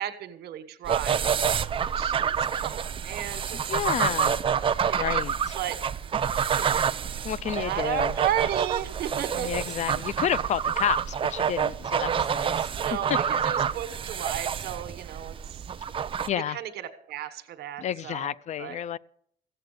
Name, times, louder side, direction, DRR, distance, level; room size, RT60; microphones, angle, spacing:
voice 1, 0.0-3.6 3.9-4.1 4.9-5.2 5.5-5.8 6.5-6.8 7.5-9.7 12.8-15.3 16.5-18.3 18.6-18.8, right 11 dB, 70° right, 1.3 m, -34 dB
sound 1, 0.8-16.3, right 7 dB, 30° right, 0.5 m, -28 dB
voice 2, 3.7-4.4 4.9-5.5 7.2-8.2 9.3-13.2 16.3-16.6 17.8-19.0, left 10 dB, 45° left, 0.5 m, -30 dB
15.0 x 7.8 x 6.7 m
cardioid pair, 110°, 17 cm